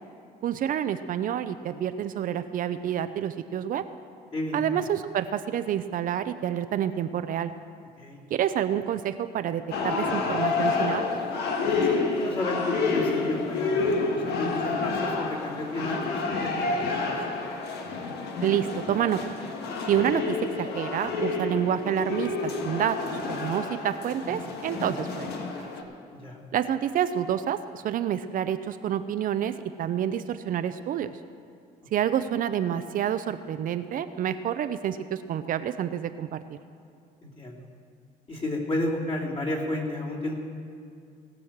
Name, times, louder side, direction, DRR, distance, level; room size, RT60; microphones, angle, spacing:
voice 1, 0.4-3.8 4.5-7.5 8.3-11.0 18.4-19.2 19.8-25.3 25.6-25.7 26.5-29.5 29.8-31.1 31.9-36.6, right 10 dB, 55° right, 11 dB, 0.5 m, -28 dB
voice 2, 4.3-4.6 8.0-8.2 11.8-17.1 26.1-26.4 37.2-37.7 38.3-40.3, left 1 dB, 35° left, -3 dB, 2.9 m, -32 dB
sound 1, 9.7-25.8, left 4 dB, 75° left, 1.5 m, -29 dB
18.5 x 6.3 x 7.3 m, 2.3 s
cardioid pair, 110°, 17 cm